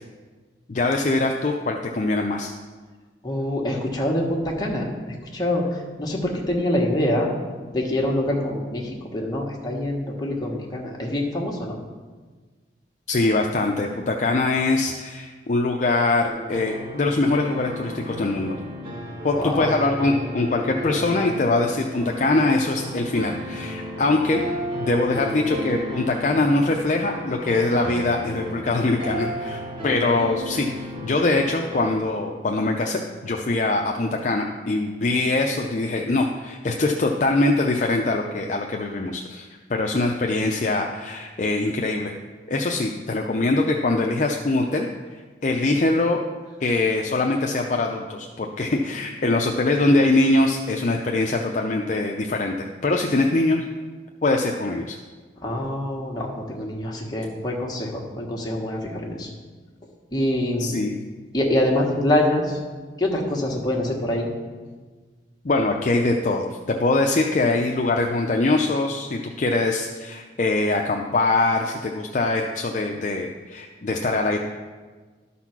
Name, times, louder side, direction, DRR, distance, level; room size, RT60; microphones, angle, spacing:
voice 1, 0.7-2.5 13.1-18.6 19.2-24.4 24.8-42.1 42.5-44.9 45.1-46.2 46.6-53.6 54.2-55.0 60.6-60.9 65.4-74.4, left 2 dB, 45° left, 2 dB, 0.5 m, -23 dB
voice 2, 3.2-7.3 7.7-11.8 19.3-19.7 55.4-59.3 60.1-60.8 61.3-62.6 63.0-64.3, left 1 dB, 25° left, -1 dB, 1.5 m, -25 dB
sound 1, 16.3-32.0, equal, 30° right, 1.8 m, -33 dB
12.5 x 4.2 x 5.9 m, 1.4 s
head